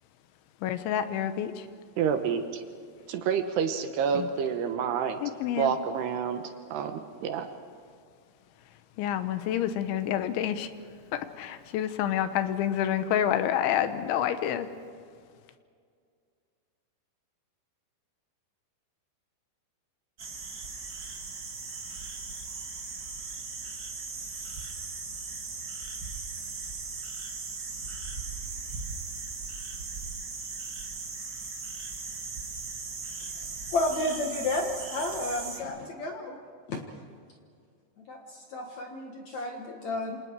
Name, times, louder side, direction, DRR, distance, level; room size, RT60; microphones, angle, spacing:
voice 1, 0.6-1.7 4.2-4.3 5.2-5.8 9.0-10.7 11.1-14.7, left 10 dB, 85° left, 10 dB, 3.4 m, -28 dB
voice 2, 2.0-2.6 3.1-5.2 5.6-6.4 6.7-7.5, right 7 dB, 70° right, 7 dB, 2.9 m, -28 dB
sound 1, 20.2-35.6, right 4 dB, 45° right, 1.4 m, -38 dB
voice 3, 33.4-36.4 36.7-36.8 38.0-40.2, left 2 dB, 60° left, 2 dB, 2.0 m, -32 dB
28.0 x 27.0 x 4.7 m, 2.1 s
omnidirectional pair, 5.3 m